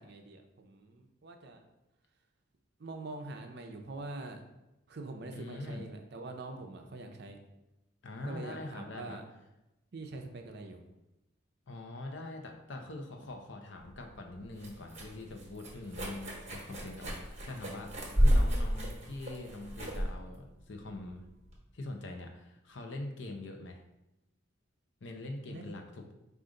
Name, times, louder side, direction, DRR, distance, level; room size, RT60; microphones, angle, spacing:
voice 1, 0.0-1.6 2.8-4.4 4.9-7.4 8.2-9.3 9.9-10.8 25.5-25.7 26.0-26.1, right 2 dB, 55° right, 5 dB, 0.5 m, -44 dB
voice 2, 5.3-5.8 8.0-9.2 11.7-21.3 21.7-23.8 25.0-26.1, left 2 dB, 70° left, 3 dB, 0.6 m, -43 dB
sound 1, 13.8-21.6, equal, 35° right, 1.1 m, -32 dB
5.0 x 2.5 x 3.8 m, 0.94 s
head